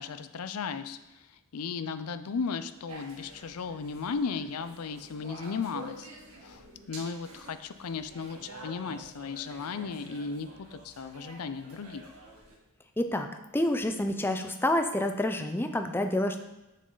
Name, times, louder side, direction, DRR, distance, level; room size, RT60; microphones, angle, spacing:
voice 1, 0.0-6.1 6.4-12.0, left 5 dB, 80° left, 11 dB, 0.5 m, -36 dB
sound 1, 2.9-12.6, right 2 dB, 85° right, 1.7 m, -48 dB
voice 2, 13.0-13.3 13.5-16.4, left 1 dB, 10° left, 6 dB, 0.4 m, -28 dB
7.5 x 6.6 x 3.9 m, 0.99 s
head